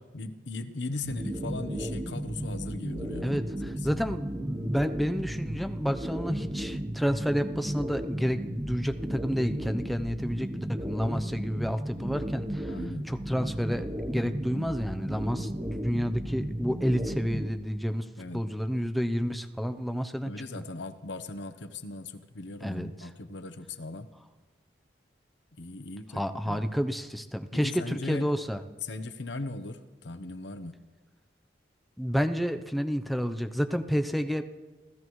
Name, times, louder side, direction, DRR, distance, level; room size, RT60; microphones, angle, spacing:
voice 1, 0.1-4.2 12.7-13.1 18.2-18.5 20.2-24.1 25.6-26.7 27.5-28.4 28.8-30.7, left 2 dB, 90° left, 11 dB, 1.0 m, -38 dB
sound 1, 1.0-17.5, right 1 dB, 25° right, 1.1 m, -34 dB
voice 2, 3.2-12.7 13.0-18.1 18.3-20.3 22.6-23.1 26.1-28.6 32.0-34.4, equal, ahead, 8 dB, 0.7 m, -30 dB
28.0 x 15.5 x 3.2 m, 1.2 s
head